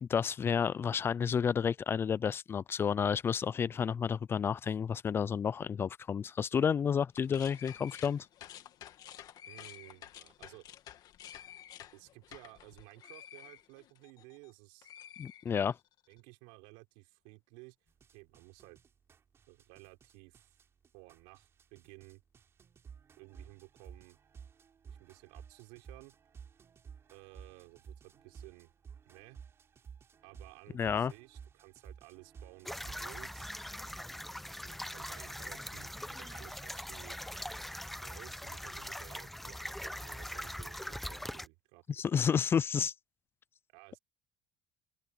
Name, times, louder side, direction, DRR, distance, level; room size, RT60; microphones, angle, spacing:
voice 1, 0.0-8.3 15.2-15.8 30.7-31.1 41.9-42.9, left 7 dB, 30° left, 0.5 m, -31 dB
sound 1, 7.1-14.5 14.8-16.0, left 11 dB, 50° left, 1.9 m, -51 dB
voice 2, 9.5-10.6 11.9-14.9 16.1-17.8 18.1-18.8 19.5-20.5 20.9-22.2 23.2-24.2 24.9-26.2 27.1-28.7 29.1-29.4 30.2-33.5 34.6-37.2 38.0-42.1 43.7-44.0, right 27 dB, 90° right, 5.7 m, -55 dB
sound 2, 17.9-33.3, right 7 dB, 30° right, 3.5 m, -54 dB
sound 3, 32.6-41.5, left 1 dB, ahead, 0.8 m, -42 dB
cardioid pair, 130°, 8 cm